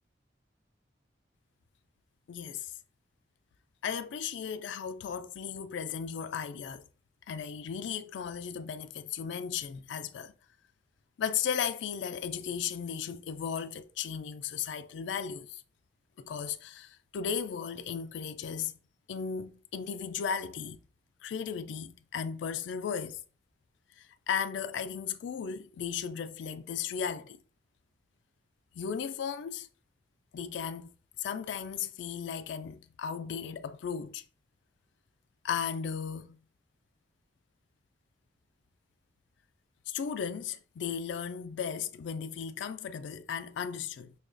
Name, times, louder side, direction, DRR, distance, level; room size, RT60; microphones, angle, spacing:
voice 1, 2.3-2.7 3.8-6.8 7.3-10.3 11.2-15.6 16.2-18.8 19.1-20.8 21.2-23.2 24.0-27.4 28.7-29.7 30.3-30.9 31.2-34.2 35.4-36.4 39.9-44.1, left 7 dB, 80° left, 0.3 m, -35 dB
5.4 x 2.3 x 2.5 m
head